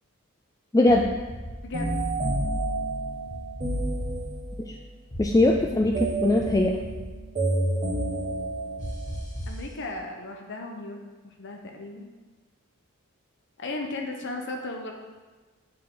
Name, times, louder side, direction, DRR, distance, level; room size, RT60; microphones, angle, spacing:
voice 1, 0.7-1.0 4.7-4.8 5.2-6.8, left 2 dB, 15° left, 2 dB, 0.4 m, -21 dB
sound 1, 0.9-1.5 1.9-2.5 3.3-4.2 5.1-6.1 6.4-7.0 8.8-9.6, equal, 40° left, 1.9 m, -37 dB
sound 2, 1.7-4.7 5.9-9.2, right 2 dB, 35° right, 1.7 m, -29 dB
voice 2, 9.5-12.1 13.6-14.9, left 2 dB, 55° left, 2 dB, 0.8 m, -36 dB
7.5 x 7.0 x 3.8 m, 1.3 s
head